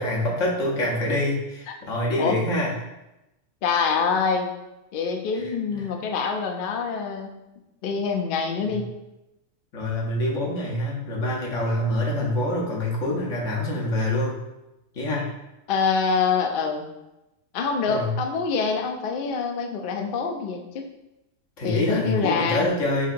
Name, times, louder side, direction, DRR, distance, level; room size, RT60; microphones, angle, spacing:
voice 1, 0.0-2.7 5.3-5.9 8.6-8.8 9.7-14.3 14.9-15.3 17.9-18.1 21.6-23.1, left 1 dB, 65° left, -3 dB, 1.3 m, -26 dB
voice 2, 3.6-4.5 4.9-7.4 7.8-8.9 15.7-16.9 17.5-20.8 21.6-22.7, left 5 dB, 80° left, 3 dB, 0.4 m, -25 dB
5.5 x 2.8 x 2.5 m, 0.95 s
omnidirectional pair, 1.5 m